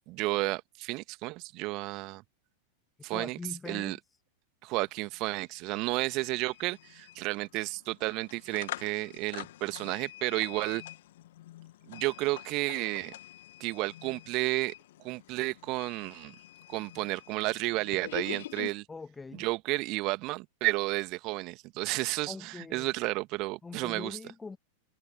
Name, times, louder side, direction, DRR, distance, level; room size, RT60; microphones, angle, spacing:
voice 1, 0.1-2.2 3.0-3.4 3.7-4.0 4.6-10.8 11.9-13.1 13.6-14.7 15.0-16.3 16.7-18.9 19.3-24.2, right 23 dB, 40° right, 1.9 m, -32 dB
voice 2, 3.1-4.0 18.9-19.5 22.3-22.9 23.6-24.6, left 4 dB, 10° left, 2.2 m, -42 dB
sound 1, 4.9-5.0 5.2-18.7, left 14 dB, 55° left, 2.0 m, -46 dB
figure-of-eight pair, 90°, 0 cm